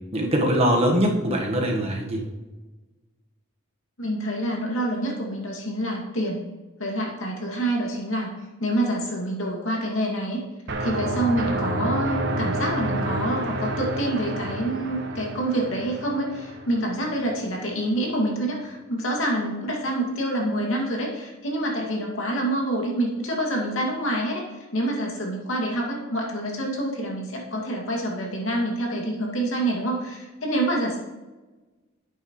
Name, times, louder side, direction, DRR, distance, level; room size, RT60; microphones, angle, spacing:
voice 1, 0.1-2.2, equal, 30° right, 0 dB, 1.5 m, -22 dB
voice 2, 4.0-6.4 6.8-8.3 8.6-10.4 10.8-24.4 24.7-31.0, right 1 dB, 85° left, -1 dB, 2.4 m, -27 dB
sound 1, 10.7-17.4, right 1 dB, 60° right, 1.1 m, -29 dB
10.5 x 8.6 x 3.2 m, 1.2 s
head